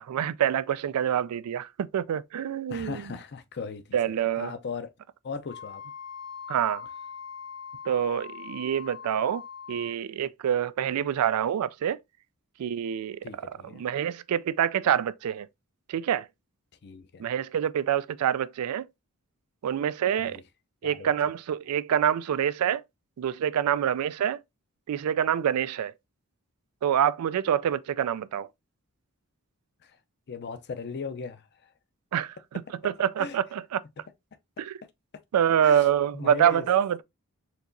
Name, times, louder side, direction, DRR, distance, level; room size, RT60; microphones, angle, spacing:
voice 1, 0.0-3.1 3.9-4.5 6.5-6.9 7.9-9.4 9.7-12.0 12.6-13.2 13.7-15.5 15.9-16.3 17.2-18.9 19.6-20.4 20.8-22.8 23.2-24.4 24.9-25.9 26.8-28.5 32.1-33.8 34.6-34.7 35.3-37.0, right 9 dB, 85° right, 0.3 m, -26 dB
voice 2, 2.7-4.9 5.2-5.8 13.2-13.8 16.8-17.3 20.2-20.4 20.8-21.1 29.8-30.0 30.3-31.7 33.2-33.4 35.6-35.8 36.1-36.7, left 5 dB, 50° left, 0.5 m, -38 dB
Wind instrument woodwind instrument, 5.4-10.0, left 7 dB, 80° left, 1.9 m, -42 dB
4.4 x 2.9 x 2.6 m
head